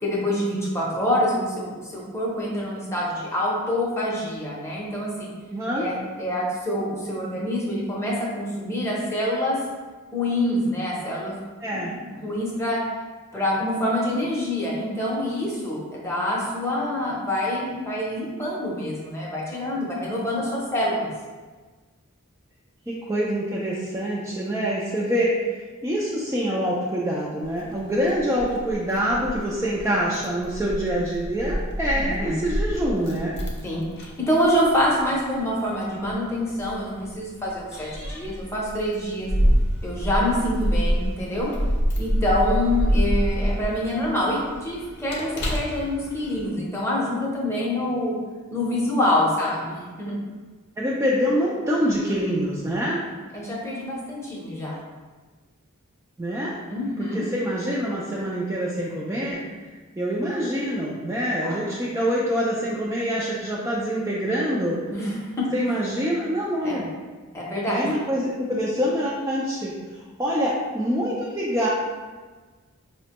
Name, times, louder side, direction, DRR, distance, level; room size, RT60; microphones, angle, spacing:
voice 1, 0.0-5.3 5.7-9.6 10.1-11.4 11.7-12.8 13.3-21.1 32.2-32.4 33.6-39.3 39.8-41.5 42.0-48.2 48.5-50.2 53.3-54.8 56.7-57.2 61.4-61.6 64.9-65.4 66.6-66.8 67.3-67.8, left 1 dB, 10° left, -5 dB, 0.7 m, -26 dB
voice 2, 5.5-5.9 11.6-11.9 22.9-25.6 25.8-33.3 50.8-53.0 56.2-56.5 57.1-59.4 60.0-64.8 65.5-66.8 67.7-71.7, equal, 15° right, -6 dB, 0.3 m, -25 dB
Keys jangling, 27.4-46.5, equal, 50° left, 0.6 m, -27 dB
5.0 x 2.1 x 2.8 m, 1.4 s
head